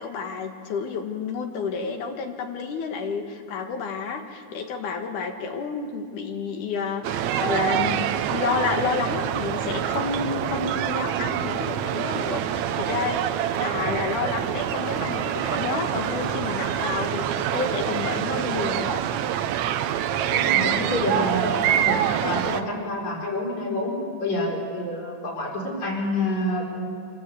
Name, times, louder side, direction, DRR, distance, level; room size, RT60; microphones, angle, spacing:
voice 1, 0.0-19.0, left 5 dB, 80° left, 4 dB, 3.0 m, -30 dB
sound 1, 7.0-22.6, right 10 dB, 75° right, 1.9 m, -26 dB
sound 2, 13.4-19.4, left 5 dB, 40° left, 4.0 m, -42 dB
voice 2, 20.3-26.8, left 1 dB, 60° left, -3 dB, 5.8 m, -28 dB
27.0 x 13.0 x 8.2 m, 2.2 s
omnidirectional pair, 3.6 m